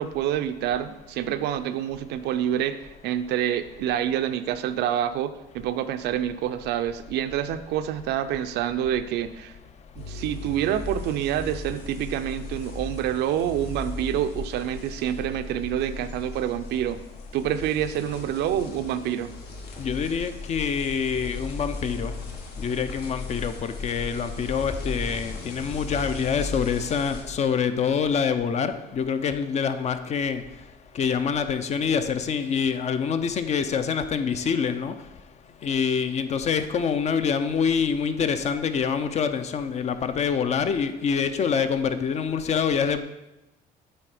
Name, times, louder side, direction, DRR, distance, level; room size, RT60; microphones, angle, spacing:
voice 1, 0.0-9.5 10.0-17.0 17.3-19.3, right 10 dB, 80° right, 10 dB, 0.5 m, -27 dB
sound 1, 10.0-27.2, left 3 dB, 70° left, 1.2 m, -37 dB
voice 2, 19.8-22.1 22.6-30.4 31.0-34.9 35.6-43.0, left 6 dB, 40° left, 10 dB, 0.5 m, -26 dB
8.4 x 3.3 x 4.9 m, 0.96 s
cardioid pair, 110°, 17 cm